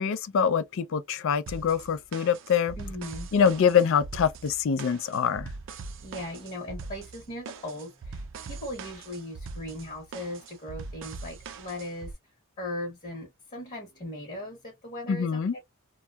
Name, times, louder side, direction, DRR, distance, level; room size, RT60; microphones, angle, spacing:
voice 1, 0.0-2.8 3.3-5.5 15.1-15.5, left 7 dB, 60° left, 0.4 m, -24 dB
sound 1, 1.5-12.1, right 4 dB, 60° right, 0.4 m, -42 dB
voice 2, 2.8-3.3 6.0-15.6, left 1 dB, 40° left, 0.9 m, -38 dB
2.7 x 2.2 x 2.2 m
head